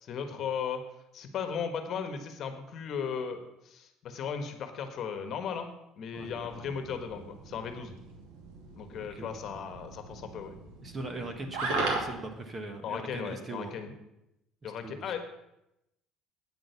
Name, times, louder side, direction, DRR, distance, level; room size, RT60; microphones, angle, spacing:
voice 1, 0.0-0.8 1.1-8.0 8.7-10.5 12.8-13.9 14.6-15.2, left 7 dB, 45° left, 7 dB, 1.4 m, -36 dB
sound 1, 6.1-12.2, right 3 dB, 85° right, 2.5 m, -38 dB
voice 2, 8.9-9.3 10.8-13.8 14.6-15.1, right 2 dB, 25° right, 6 dB, 1.3 m, -40 dB
9.0 x 6.3 x 8.1 m, 0.86 s
cardioid pair, 140°, 0 cm